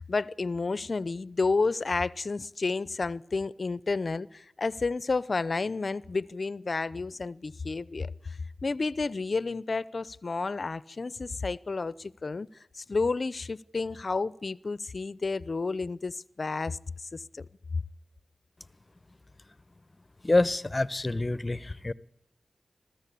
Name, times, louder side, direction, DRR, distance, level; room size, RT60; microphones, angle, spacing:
voice 1, 0.0-12.5 12.7-16.8 17.1-17.4 17.7-17.8, left 3 dB, 55° left, 0.7 m, -31 dB
voice 2, 20.2-21.9, left 2 dB, 30° left, 0.9 m, -26 dB
22.0 x 14.5 x 8.4 m
cardioid pair, 45°, 0 cm